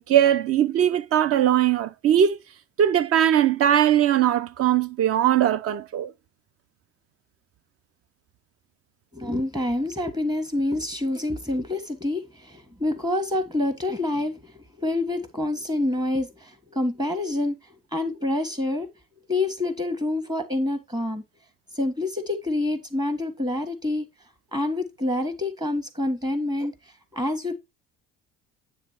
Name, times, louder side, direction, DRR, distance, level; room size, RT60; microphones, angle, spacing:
voice 1, 0.0-2.4 2.8-6.1, right 10 dB, 40° right, 0.6 m, -20 dB
voice 2, 9.1-18.9 19.3-21.2 21.7-24.1 24.5-26.7 27.1-27.5, left 2 dB, 10° right, 1.6 m, -27 dB
9.2 x 3.5 x 4.3 m
figure-of-eight pair, 55°, 38 cm